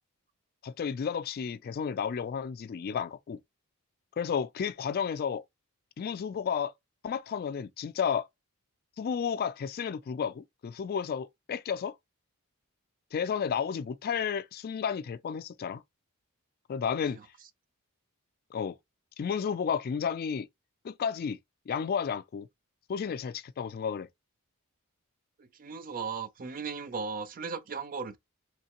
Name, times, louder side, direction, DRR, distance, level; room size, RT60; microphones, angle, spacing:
voice 1, 0.6-3.4 4.2-5.4 6.0-6.7 7.0-8.3 9.0-11.9 13.1-15.8 16.7-17.2 18.5-18.8 19.2-20.5 20.8-21.4 21.7-22.5 22.9-24.1, left 7 dB, 45° left, 0.3 m, -32 dB
voice 2, 25.4-28.2, right 5 dB, 40° right, 0.4 m, -37 dB
3.4 x 3.2 x 2.9 m
head